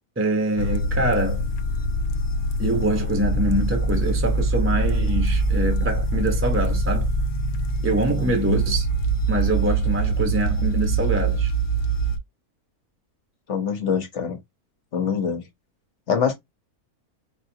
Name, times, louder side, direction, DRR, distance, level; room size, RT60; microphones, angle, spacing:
voice 1, 0.2-1.4 2.6-7.1 7.8-8.9 9.3-11.5, right 1 dB, 10° right, 0.8 m, -24 dB
relaxing ambience, 0.6-12.2, right 2 dB, 70° left, 1.2 m, -23 dB
voice 2, 13.5-14.4 14.9-15.4 16.1-16.3, left 7 dB, 50° left, 1.3 m, -24 dB
4.9 x 2.5 x 2.8 m
omnidirectional pair, 1.6 m